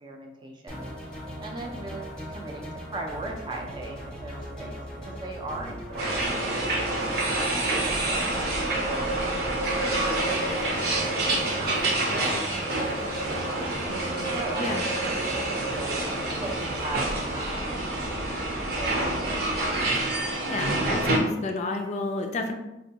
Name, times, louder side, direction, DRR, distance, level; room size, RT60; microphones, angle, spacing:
voice 1, 0.0-6.3 7.0-9.0 10.0-10.7 11.0-12.6 13.4-16.0 16.4-17.8 18.7-20.0, right 2 dB, 25° right, 1 dB, 0.5 m, -39 dB
sound 1, 0.7-19.9, equal, 5° left, 0.8 m, -39 dB
sound 2, 5.9-16.2, right 2 dB, 90° right, 1.3 m, -35 dB
sound 3, 6.0-21.2, right 2 dB, 60° right, 0.7 m, -28 dB
voice 2, 20.5-22.5, left 2 dB, 40° left, 4 dB, 0.3 m, -31 dB
4.3 x 2.2 x 2.8 m, 0.95 s
head